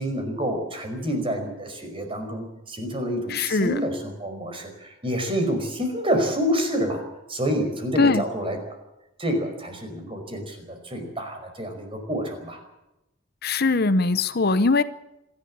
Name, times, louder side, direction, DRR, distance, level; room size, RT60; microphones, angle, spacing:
voice 1, 0.0-7.0 7.3-8.8 9.2-12.6, equal, 25° right, 5 dB, 5.2 m, -28 dB
voice 2, 3.3-3.8 8.0-8.2 13.4-14.8, left 3 dB, 50° left, 13 dB, 0.8 m, -21 dB
26.5 x 12.0 x 8.7 m, 0.91 s
head